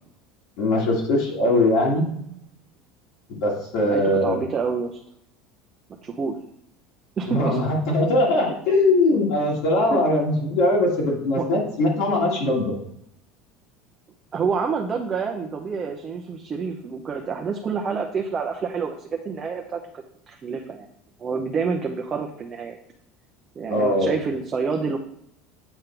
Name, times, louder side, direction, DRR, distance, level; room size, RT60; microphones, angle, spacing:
voice 1, 0.6-2.1 3.3-4.4 7.3-12.8 23.7-24.2, left 2 dB, 65° left, -3 dB, 2.1 m, -21 dB
voice 2, 3.8-5.0 6.0-6.4 7.2-7.6 9.9-10.0 11.4-11.5 14.3-19.8 20.3-20.9 21.2-22.8 23.6-25.0, right 5 dB, 25° right, 2 dB, 0.6 m, -28 dB
8.0 x 3.7 x 4.4 m, 0.76 s
cardioid pair, 155°, 0 cm